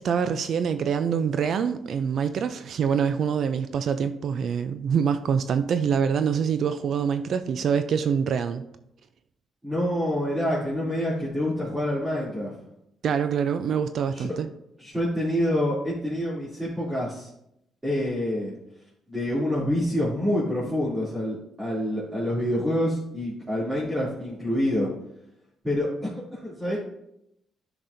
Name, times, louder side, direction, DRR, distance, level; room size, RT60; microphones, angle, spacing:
voice 1, 0.0-8.6 13.0-14.5, right 7 dB, 60° right, 10 dB, 0.4 m, -25 dB
voice 2, 9.6-12.6 14.1-14.3 14.8-17.3 17.8-18.5 19.1-24.9 25.6-26.8, left 1 dB, 15° right, -9 dB, 2.8 m, -27 dB
10.5 x 6.0 x 2.7 m, 0.79 s
cardioid pair, 90°, 0 cm